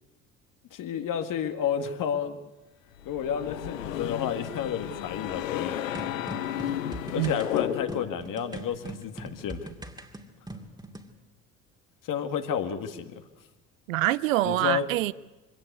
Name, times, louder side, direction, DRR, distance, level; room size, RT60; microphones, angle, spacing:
voice 1, 0.7-2.4 3.1-5.8 7.1-9.7 12.0-13.2 14.4-14.9, left 8 dB, 55° left, 2.1 m, -31 dB
sound 1, 3.0-8.3, left 12 dB, 80° left, 0.9 m, -33 dB
sound 2, 5.9-11.1, right 1 dB, 10° right, 2.5 m, -41 dB
voice 2, 13.9-15.1, right 16 dB, 80° right, 0.6 m, -25 dB
24.0 x 17.5 x 8.3 m
figure-of-eight pair, 55°, 39 cm